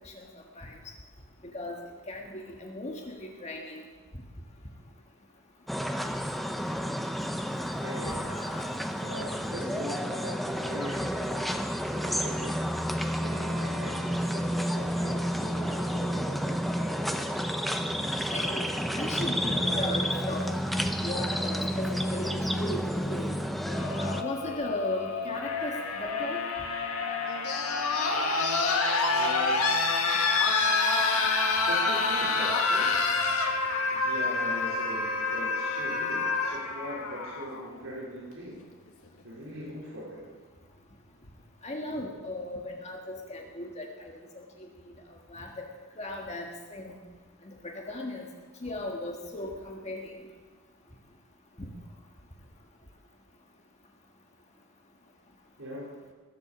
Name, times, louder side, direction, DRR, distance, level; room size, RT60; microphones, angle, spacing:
voice 1, 1.4-1.8 2.1-3.8 8.0-8.8 17.8-20.4 21.0-22.8 23.1-23.3 24.0-26.4 41.6-43.9 44.3-44.4 45.3-45.7 46.0-47.0 47.6-48.3 48.6-50.1 51.6-51.7, left 1 dB, 30° left, 1 dB, 1.6 m, -37 dB
sound 1, 5.7-24.2, equal, ahead, 0.7 m, -30 dB
voice 2, 7.8-8.4 8.9-11.6 11.9-12.6 13.0-17.1 29.0-29.8 31.7-33.1 33.9-38.6 39.2-40.3 55.6-55.9, equal, 65° right, -6 dB, 4.5 m, -41 dB
sound 2, 23.7-37.7 38.9-39.0, left 3 dB, 90° left, 1.9 m, -28 dB
20.5 x 8.3 x 7.1 m, 1.4 s
head